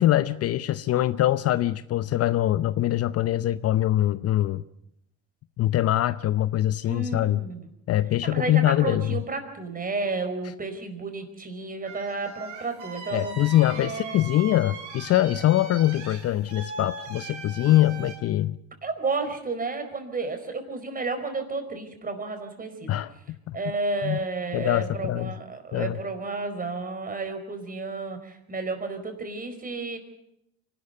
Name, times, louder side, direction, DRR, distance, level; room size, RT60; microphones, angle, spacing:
voice 1, 0.0-4.6 5.6-7.4 7.9-9.1 13.1-18.6 22.9-23.6 24.0-24.2 24.5-25.3 25.7-26.0, left 14 dB, 45° left, 15 dB, 0.7 m, -23 dB
voice 2, 6.8-7.7 8.2-13.3 13.7-14.2 18.8-23.0 23.5-30.0, right 3 dB, 25° right, 7 dB, 4.8 m, -32 dB
sound 1, 11.8-18.2, right 4 dB, 85° right, 6.5 m, -40 dB
24.5 x 13.0 x 9.4 m, 0.81 s
hypercardioid pair, 85°, 34 cm